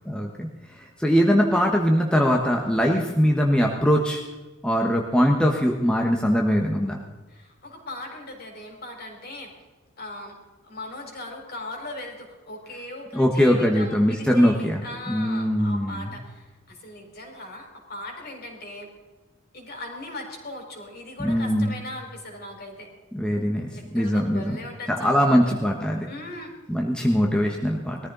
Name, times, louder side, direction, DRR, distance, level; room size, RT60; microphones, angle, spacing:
voice 1, 0.1-0.5 0.7-4.2 4.6-7.0 13.1-16.2 21.2-21.8 23.1-23.7 23.9-24.6 24.9-26.1 26.7-28.1, equal, 5° left, 0 dB, 1.3 m, -22 dB
voice 2, 7.3-9.5 10.0-10.3 10.6-18.9 19.5-22.9 23.7-25.6 26.1-26.5, left 1 dB, 50° left, 1 dB, 4.8 m, -39 dB
20.5 x 14.5 x 4.0 m, 1.2 s
head